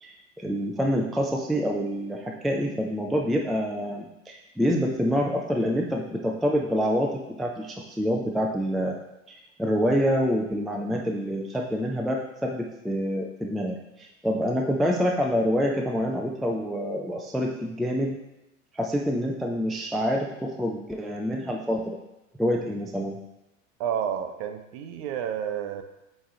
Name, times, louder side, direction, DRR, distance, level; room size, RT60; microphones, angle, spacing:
voice 1, 0.0-7.1 7.4-8.9 9.3-18.2 18.7-22.0 22.4-23.2, equal, ahead, 0 dB, 0.3 m, -27 dB
voice 2, 23.8-25.8, right 9 dB, 50° right, 7 dB, 0.9 m, -30 dB
7.9 x 3.2 x 3.7 m, 0.95 s
hypercardioid pair, 90°, 41 cm